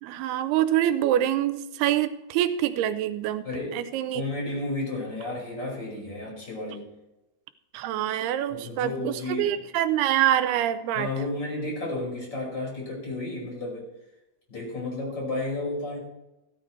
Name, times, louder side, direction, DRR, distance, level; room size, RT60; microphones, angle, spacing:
voice 1, 0.0-3.5 3.7-4.2 7.7-11.1, right 11 dB, 90° right, 12 dB, 2.6 m, -25 dB
voice 2, 3.4-3.8 4.1-6.8 8.5-9.6 10.9-13.9 14.5-16.0, left 2 dB, 25° left, -3 dB, 6.0 m, -32 dB
15.0 x 13.5 x 3.3 m, 0.95 s
omnidirectional pair, 4.6 m